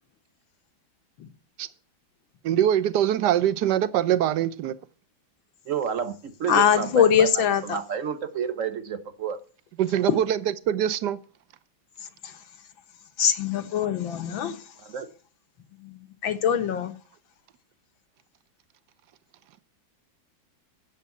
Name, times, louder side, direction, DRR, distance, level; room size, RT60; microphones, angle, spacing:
voice 1, 2.4-4.8 9.8-11.2, right 11 dB, 65° right, 1.4 m, -23 dB
voice 2, 5.7-9.4 14.8-15.1, right 7 dB, 45° right, 1.4 m, -30 dB
voice 3, 6.5-7.8 10.1-10.2 13.2-14.6 15.8-16.9, left 8 dB, 85° left, 2.1 m, -22 dB
16.0 x 7.4 x 8.4 m
omnidirectional pair, 2.1 m